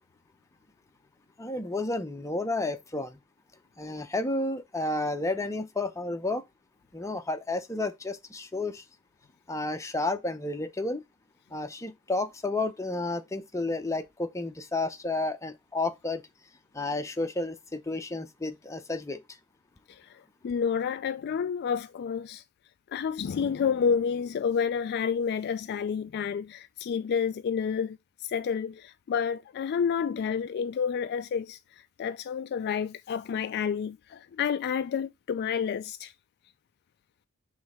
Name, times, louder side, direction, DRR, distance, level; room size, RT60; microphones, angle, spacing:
voice 1, 1.4-3.2 3.8-6.4 6.9-8.8 9.5-11.0 11.5-16.2 16.7-19.2, left 2 dB, 15° left, 0.6 m, -31 dB
voice 2, 19.9-22.4 22.9-36.1, left 6 dB, 45° left, 0.3 m, -30 dB
6.2 x 3.2 x 4.8 m
head